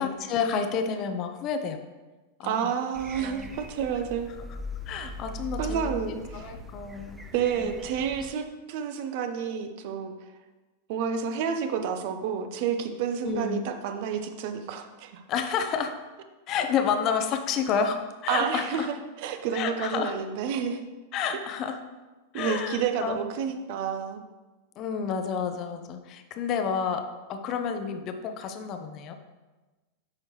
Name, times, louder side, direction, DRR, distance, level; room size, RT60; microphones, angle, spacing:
voice 1, 0.0-1.8 2.4-2.7 3.2-3.5 4.9-7.3 7.6-7.7 13.2-13.7 15.3-16.0 16.5-18.9 19.5-20.1 21.1-21.8 22.3-23.2 24.8-29.2, left 6 dB, 35° left, 7 dB, 0.7 m, -30 dB
voice 2, 2.4-4.3 5.6-6.6 7.3-10.3 10.9-15.2 18.3-20.8 22.3-24.2, right 7 dB, 50° right, 7 dB, 0.7 m, -30 dB
sound 1, 3.0-8.3, equal, 10° right, 0.6 m, -40 dB
9.7 x 6.0 x 3.2 m, 1.2 s
figure-of-eight pair, 90°, 0 cm